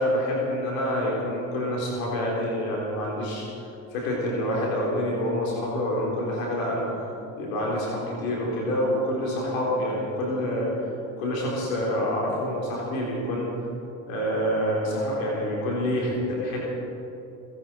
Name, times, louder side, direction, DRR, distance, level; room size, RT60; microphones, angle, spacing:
voice 1, 0.0-6.9 7.4-10.7 11.2-13.5 14.1-16.6, equal, 85° left, -3 dB, 4.0 m, -27 dB
29.5 x 10.5 x 4.6 m, 2.8 s
hypercardioid pair, 55°, 40 cm